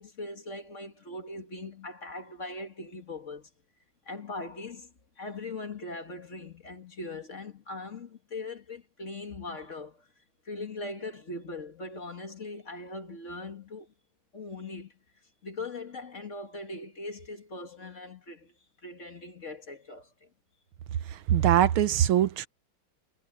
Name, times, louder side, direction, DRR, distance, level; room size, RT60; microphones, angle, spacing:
voice 1, 0.0-3.5 4.1-10.1 10.5-13.9 14.3-14.9 15.4-18.5 18.8-20.3, left 2 dB, 35° left, 2.1 m, -40 dB
voice 2, 21.1-22.5, right 11 dB, 80° right, 1.7 m, -22 dB
omnidirectional pair, 2.3 m